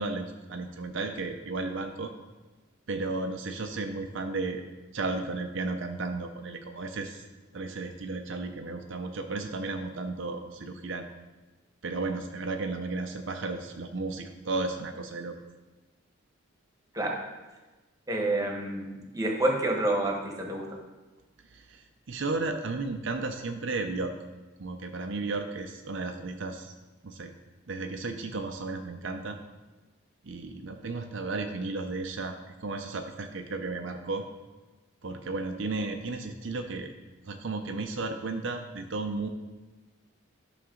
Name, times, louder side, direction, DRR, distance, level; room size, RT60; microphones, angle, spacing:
voice 1, 0.0-2.1 2.9-4.6 4.9-7.2 7.5-11.1 11.8-15.4 21.5-24.1 24.6-26.7 27.0-27.3 27.7-29.4 30.2-34.3 35.0-36.9 37.3-39.3, right 3 dB, 65° right, 5 dB, 0.6 m, -34 dB
voice 2, 18.1-20.7, right 1 dB, 15° right, 1 dB, 1.2 m, -28 dB
11.5 x 6.0 x 3.8 m, 1.2 s
head